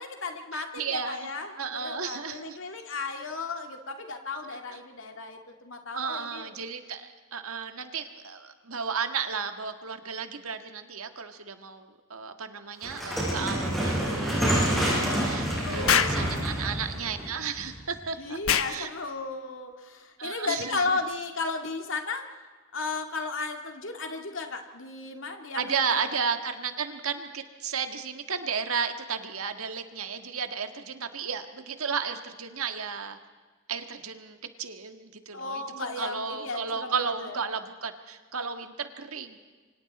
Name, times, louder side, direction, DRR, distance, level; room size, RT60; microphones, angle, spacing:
voice 1, 0.0-6.5 14.3-16.5 18.2-22.3 22.7-26.0 35.3-37.4, left 3 dB, 65° left, 4 dB, 2.2 m, -35 dB
voice 2, 0.5-1.3 1.6-2.6 4.7-4.8 5.9-18.4 18.7-18.9 20.2-21.0 25.5-33.2 33.7-39.4, right 6 dB, 85° right, 7 dB, 1.7 m, -33 dB
sound 1, 12.8-18.0, equal, ahead, 7.4 m, -28 dB
Explosion, 15.9-16.2 18.4-18.8, left 8 dB, 80° left, 1.1 m, -23 dB
28.0 x 24.5 x 4.2 m, 1.4 s
head